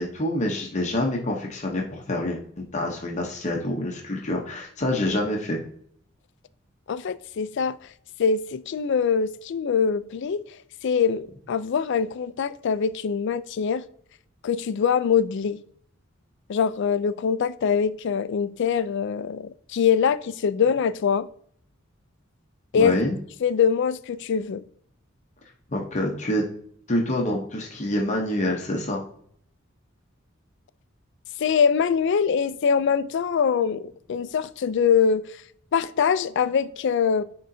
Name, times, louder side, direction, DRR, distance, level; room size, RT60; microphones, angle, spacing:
voice 1, 0.0-5.6 22.7-23.2 25.7-26.4 26.9-29.0, left 1 dB, 35° left, 0.8 m, -26 dB
voice 2, 6.9-7.8 8.2-10.4 10.8-13.8 14.4-15.6 16.5-21.3 22.7-22.9 23.4-24.6 31.4-35.2 35.7-37.2, left 6 dB, 60° left, 0.4 m, -23 dB
9.6 x 3.7 x 2.7 m
head